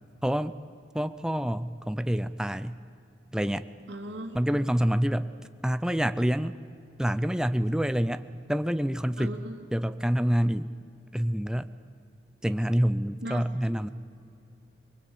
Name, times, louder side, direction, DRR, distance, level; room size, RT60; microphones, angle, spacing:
voice 1, 0.2-0.5 0.9-2.8 3.3-3.6 4.3-5.3 5.6-6.6 7.0-8.2 8.5-9.4 9.7-10.7 11.1-11.7 12.4-13.9, equal, 5° right, 12 dB, 0.5 m, -27 dB
voice 2, 3.9-4.4 9.2-9.6 13.2-13.9, right 1 dB, 75° right, 5 dB, 2.6 m, -39 dB
24.5 x 23.0 x 8.6 m, 2.5 s
head